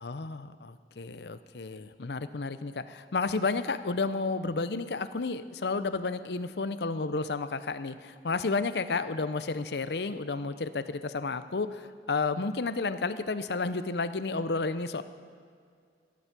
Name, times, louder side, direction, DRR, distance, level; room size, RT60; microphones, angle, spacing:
voice 1, 0.0-15.0, left 3 dB, 75° left, 12 dB, 0.7 m, -31 dB
16.0 x 11.0 x 6.0 m, 2.1 s
head